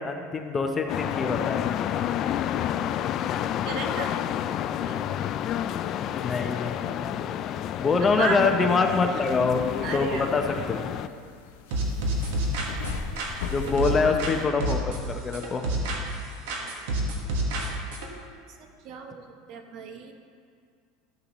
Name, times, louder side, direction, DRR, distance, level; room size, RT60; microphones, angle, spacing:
voice 1, 0.0-1.7 6.2-7.1 7.8-9.6 9.9-10.9 13.5-15.6, left 4 dB, 20° left, 4 dB, 0.7 m, -25 dB
sound 1, 0.9-11.1, left 10 dB, 45° left, 0.3 m, -29 dB
voice 2, 3.7-4.2 4.8-5.2 8.1-8.5 9.8-10.3 13.6-14.3 17.6-17.7 18.5-20.1, right 6 dB, 55° right, 5 dB, 1.0 m, -35 dB
sound 2, 9.3-14.5, left 6 dB, 85° left, 0.7 m, -39 dB
sound 3, 11.7-14.3 14.6-16.2 16.5-18.1, right 1 dB, 80° right, 1.5 m, -29 dB
13.5 x 6.8 x 3.1 m, 2.2 s
supercardioid pair, 125°, 0 cm